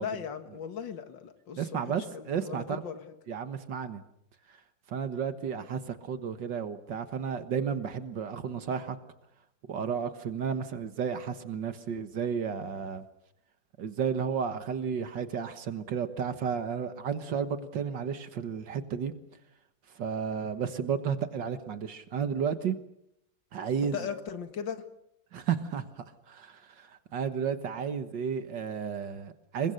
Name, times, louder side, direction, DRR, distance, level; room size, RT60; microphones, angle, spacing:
voice 1, 0.0-3.0 23.9-24.9, left 8 dB, 85° left, 2.3 m, -38 dB
voice 2, 1.6-2.8 3.3-4.0 4.5-4.6 4.9-9.0 9.7-13.0 13.8-19.1 19.9-22.8 23.5-24.1 25.3-29.7, right 7 dB, 75° right, 2.1 m, -32 dB
27.5 x 23.5 x 6.7 m
omnidirectional pair, 2.0 m